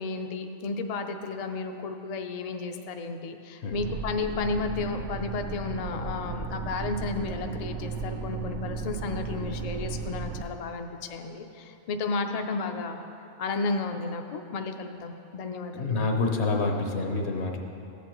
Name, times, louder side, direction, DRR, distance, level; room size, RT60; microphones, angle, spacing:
voice 1, 0.0-13.0 13.4-16.0, left 4 dB, 50° left, 5 dB, 0.4 m, -33 dB
sound 1, 3.7-10.4, right 4 dB, 85° right, 0.9 m, -35 dB
voice 2, 15.7-17.6, left 3 dB, 70° left, 2 dB, 1.1 m, -27 dB
14.5 x 8.3 x 3.0 m, 2.9 s
omnidirectional pair, 1.2 m